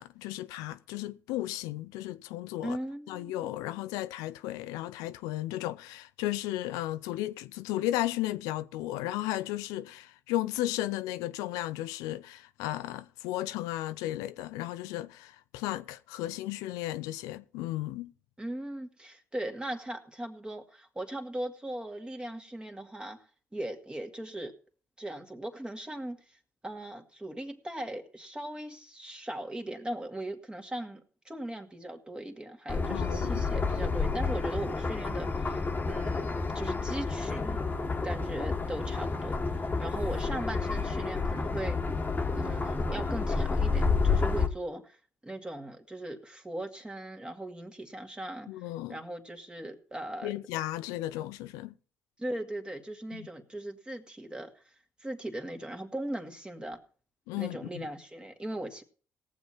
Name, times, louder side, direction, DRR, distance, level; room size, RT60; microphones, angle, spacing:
voice 1, 0.0-2.8 3.1-18.1 32.9-33.4 48.5-48.9 50.2-51.7 53.1-53.3 57.3-57.8, left 15 dB, 85° left, 0.4 m, -34 dB
voice 2, 2.6-3.5 18.4-23.3 23.5-24.5 25.0-26.4 26.6-37.7 38.0-39.4 39.8-41.8 42.3-45.0 45.2-48.5 48.9-50.3 52.2-54.6 55.0-56.8 57.4-58.8, right 1 dB, 15° right, 2.1 m, -39 dB
sound 1, 32.7-44.5, left 4 dB, 30° left, 1.5 m, -30 dB
18.5 x 7.4 x 4.3 m
supercardioid pair, 60°, 6 cm